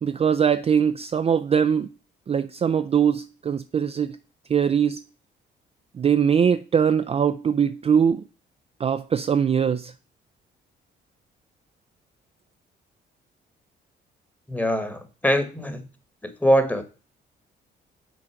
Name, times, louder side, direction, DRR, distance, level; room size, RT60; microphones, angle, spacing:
voice 1, 0.0-1.9 2.3-4.2 4.5-5.0 5.9-8.2 8.8-9.9, right 7 dB, 30° right, 0.4 m, -21 dB
voice 2, 14.5-15.9 16.2-16.8, equal, 10° left, 1.3 m, -23 dB
6.3 x 3.9 x 5.7 m
cardioid pair, 90°, 20 cm